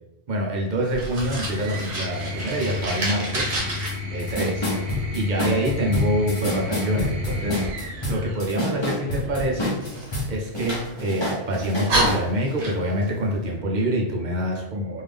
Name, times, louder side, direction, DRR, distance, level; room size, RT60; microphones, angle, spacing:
voice 1, 0.3-3.6 4.1-4.7 5.1-9.8 10.3-15.0, right 1 dB, 45° right, -1 dB, 0.9 m, -26 dB
Fire, 0.9-3.9 9.8-11.0 11.5-11.6 11.9-13.1, right 1 dB, 65° right, 1.4 m, -28 dB
sound 1, 1.0-9.4 10.6-11.3, left 3 dB, 90° right, 1.1 m, -33 dB
supra beat straight double snare, 3.9-4.0 4.2-10.3 10.5-12.2, left 1 dB, 25° left, 0.9 m, -27 dB
3.6 x 2.7 x 3.4 m, 0.91 s
omnidirectional pair, 1.2 m